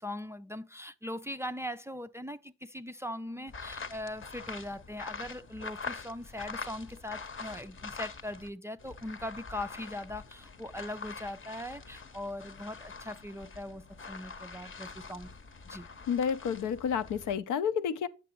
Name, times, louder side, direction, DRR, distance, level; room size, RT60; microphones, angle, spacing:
voice 1, 0.0-15.3 15.7-15.9, left 1 dB, 10° right, 0.4 m, -40 dB
sound 1, 3.5-8.5 8.8-17.4, left 4 dB, 35° left, 0.9 m, -44 dB
voice 2, 16.1-18.1, left 7 dB, 65° left, 0.7 m, -30 dB
8.2 x 6.1 x 3.0 m
hypercardioid pair, 45°, 33 cm